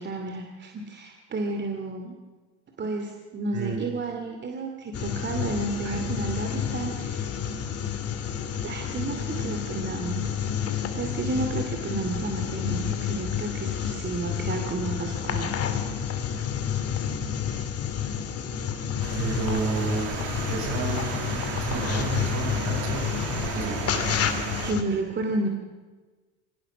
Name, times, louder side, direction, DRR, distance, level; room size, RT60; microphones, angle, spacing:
voice 1, 0.0-2.2 2.8-7.4 8.6-10.3 10.6-15.5 24.6-25.5, right 3 dB, 30° right, 3 dB, 2.7 m, -31 dB
voice 2, 3.5-3.9 5.8-6.1 19.2-20.1 20.5-21.3 21.6-23.2 23.5-23.8, right 4 dB, 55° right, 4 dB, 5.6 m, -31 dB
sound 1, 4.9-24.8, left 8 dB, 45° left, 2.5 m, -30 dB
sound 2, 19.0-24.7, right 9 dB, 70° right, 2.4 m, -35 dB
24.5 x 17.5 x 6.2 m, 1.3 s
hypercardioid pair, 85°, 34 cm